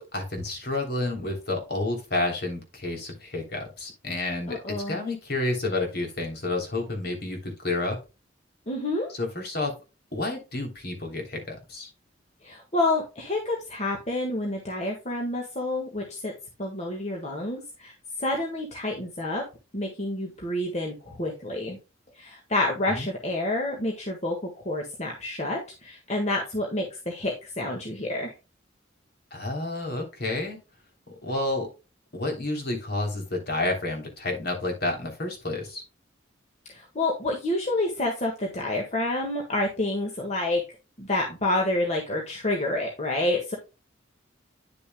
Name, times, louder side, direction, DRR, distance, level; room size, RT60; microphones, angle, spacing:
voice 1, 0.0-8.0 9.1-9.7 10.1-11.9 23.0-23.1 29.3-30.6 31.2-31.7 32.1-35.8, left 2 dB, 55° left, 2 dB, 3.1 m, -30 dB
voice 2, 4.5-5.0 8.7-9.1 12.4-16.3 16.6-19.4 19.7-21.8 22.1-24.4 24.6-28.3 36.7-40.6 41.0-43.6, left 2 dB, 35° left, 0 dB, 1.6 m, -28 dB
10.0 x 6.9 x 2.2 m, 0.29 s
head